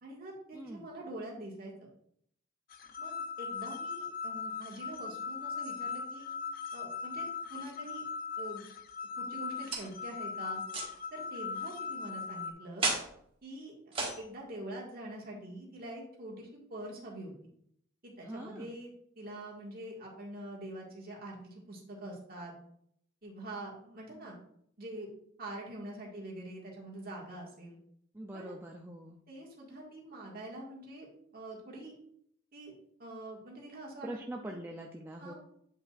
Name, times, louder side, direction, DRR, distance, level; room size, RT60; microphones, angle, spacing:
voice 1, 0.0-1.9 3.0-6.3 6.7-8.1 8.4-8.6 9.2-10.6 11.1-12.9 13.4-17.4 18.0-22.5 23.2-24.4 24.8-25.1 25.4-27.8 28.3-28.5 29.3-32.0 32.5-32.7 33.0-34.1 34.5-34.6 35.2-35.3, right 1 dB, 45° right, -2 dB, 1.7 m, -45 dB
voice 2, 0.5-0.9 18.2-18.7 28.1-29.2 34.0-35.3, right 1 dB, 10° right, 1 dB, 0.4 m, -43 dB
sound 1, 2.7-12.5, left 6 dB, 45° left, 0.5 m, -39 dB
sound 2, 9.7-10.0 10.7-11.0 12.8-13.1 13.9-14.2, right 3 dB, 25° right, 1.4 m, -32 dB
8.6 x 5.3 x 2.4 m, 0.70 s
head